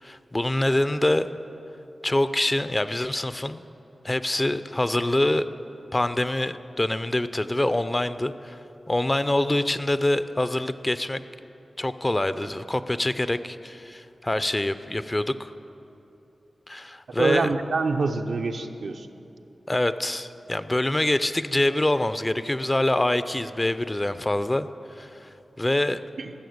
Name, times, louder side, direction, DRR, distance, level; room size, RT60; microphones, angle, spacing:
voice 1, 0.0-1.3 2.0-3.6 4.0-5.5 5.9-8.6 8.9-11.2 11.8-15.5 16.7-17.5 19.7-24.7 25.0-25.3 25.6-26.0, left 1 dB, 25° left, 13 dB, 0.5 m, -25 dB
voice 2, 17.2-19.1 26.2-26.3, right 4 dB, 80° right, 5 dB, 0.6 m, -26 dB
14.5 x 6.5 x 7.9 m, 2.9 s
cardioid pair, 50°, 0 cm